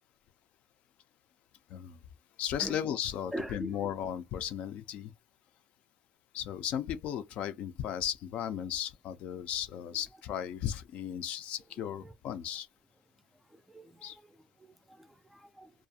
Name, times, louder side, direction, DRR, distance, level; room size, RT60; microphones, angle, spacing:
voice 1, 2.4-5.1 6.3-12.7 14.0-14.2, left 10 dB, 65° left, 0.4 m, -36 dB
voice 2, 3.3-3.8 12.0-12.1 13.5-14.4 14.9-15.7, equal, 10° right, 0.3 m, -42 dB
2.4 x 2.2 x 2.7 m
cardioid pair, 120°, 2 cm